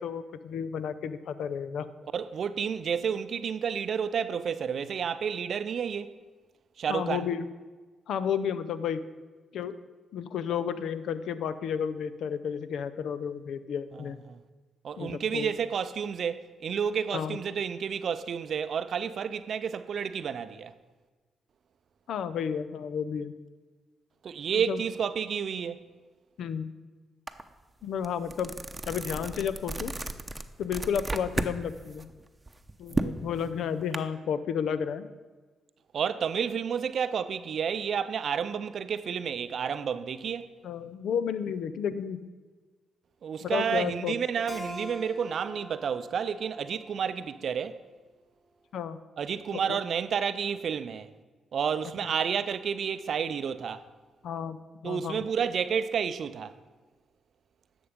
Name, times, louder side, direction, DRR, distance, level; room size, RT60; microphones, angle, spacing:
voice 1, 0.0-1.9 6.9-7.5 8.1-9.0 9.5-9.8 10.1-14.2 15.0-15.5 17.1-17.4 22.1-23.3 24.6-24.8 26.4-26.7 27.8-28.5 28.9-29.9 30.6-32.1 32.8-35.1 40.6-42.3 43.4-44.1 48.7-49.0 49.5-49.8 54.2-55.3, left 7 dB, 75° left, 0.5 m, -32 dB
voice 2, 2.1-6.1 6.8-7.3 14.0-14.4 14.8-20.7 24.2-25.8 32.9-33.2 35.9-40.5 43.2-47.8 49.2-51.1 51.5-53.8 54.8-56.5, right 7 dB, 65° right, 0.5 m, -30 dB
sound 1, 27.3-27.4 27.8-31.6 31.9-34.0, right 2 dB, 20° right, 0.8 m, -34 dB
Keyboard (musical), 44.5-47.7, left 1 dB, 30° left, 1.8 m, -43 dB
11.0 x 6.9 x 5.1 m
supercardioid pair, 50°, 0 cm